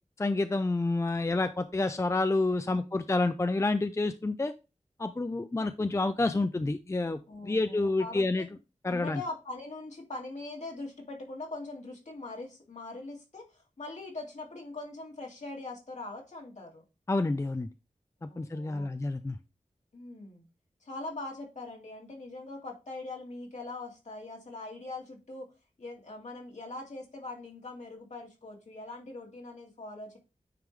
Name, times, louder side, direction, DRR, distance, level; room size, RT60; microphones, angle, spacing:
voice 1, 0.2-4.5 5.0-7.2 7.4-8.5 8.8-9.2 17.1-17.7 18.2-19.4, left 2 dB, 20° left, 10 dB, 0.4 m, -29 dB
voice 2, 7.3-8.5 8.9-16.8 18.2-18.9 19.9-20.5 20.8-25.5 25.8-30.2, left 2 dB, 70° left, 0 dB, 2.3 m, -42 dB
9.2 x 3.7 x 3.3 m, 0.28 s
wide cardioid pair, 75°, 13 cm